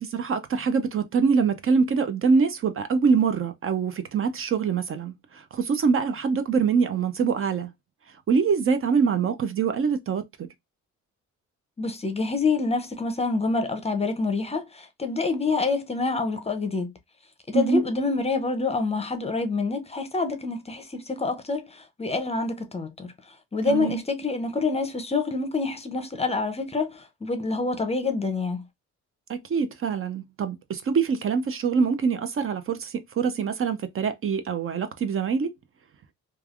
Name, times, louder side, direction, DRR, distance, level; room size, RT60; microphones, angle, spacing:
voice 1, 0.0-7.7 8.3-10.2 17.5-17.8 23.7-24.0 29.3-35.5, right 5 dB, 45° right, 0.6 m, -24 dB
voice 2, 11.8-16.9 17.5-23.1 23.5-28.6, left 3 dB, 20° left, 0.6 m, -27 dB
3.2 x 2.3 x 2.4 m
cardioid pair, 90°, 30 cm